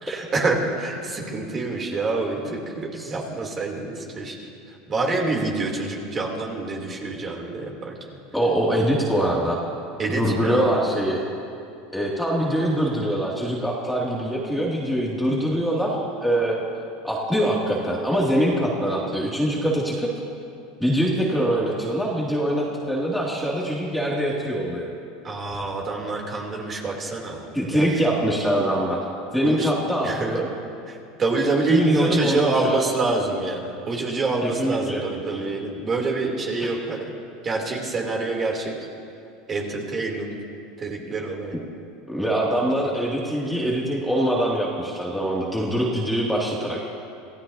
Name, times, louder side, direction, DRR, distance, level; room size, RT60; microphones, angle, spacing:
voice 1, 0.0-4.3 4.9-7.9 10.0-10.7 25.2-28.0 29.4-29.7 30.0-30.3 30.9-37.0 37.4-38.7 39.5-40.3 40.8-41.5, right 3 dB, 30° right, -1 dB, 3.3 m, -26 dB
voice 2, 8.3-9.6 10.1-11.2 11.9-16.6 17.0-20.1 20.8-24.9 27.5-29.0 29.3-30.5 31.7-32.8 34.4-35.0 35.3-35.4 36.6-36.7 42.1-46.8, equal, ahead, -4 dB, 2.6 m, -23 dB
27.5 x 15.5 x 2.9 m, 2.5 s
supercardioid pair, 105°, 0 cm